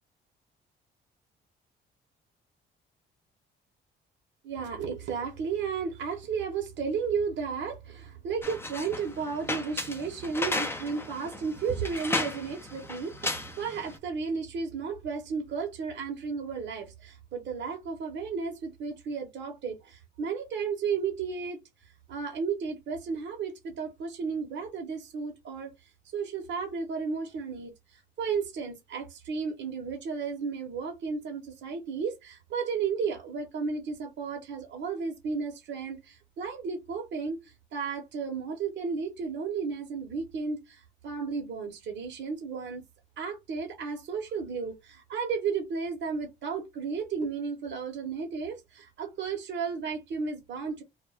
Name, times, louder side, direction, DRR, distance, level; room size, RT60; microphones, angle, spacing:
voice 1, 4.4-21.6 22.1-25.7 26.1-27.7 28.2-42.8 43.2-50.8, right 5 dB, 65° right, 0.9 m, -33 dB
sound 1, 8.4-14.0, left 2 dB, 10° left, 0.5 m, -35 dB
2.3 x 2.1 x 3.2 m
cardioid pair, 90°, 20 cm